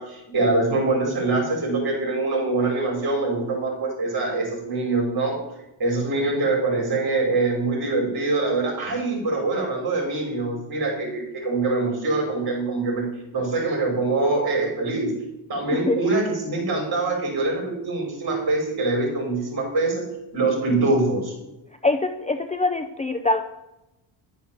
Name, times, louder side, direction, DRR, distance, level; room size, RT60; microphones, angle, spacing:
voice 1, 0.0-5.4 5.8-13.0 13.3-15.1 15.5-20.0 20.3-21.3, right 3 dB, 50° right, 0 dB, 5.0 m, -24 dB
voice 2, 21.8-23.4, left 2 dB, 15° left, 6 dB, 0.5 m, -23 dB
11.5 x 7.1 x 7.2 m, 0.93 s
cardioid pair, 145°, 49 cm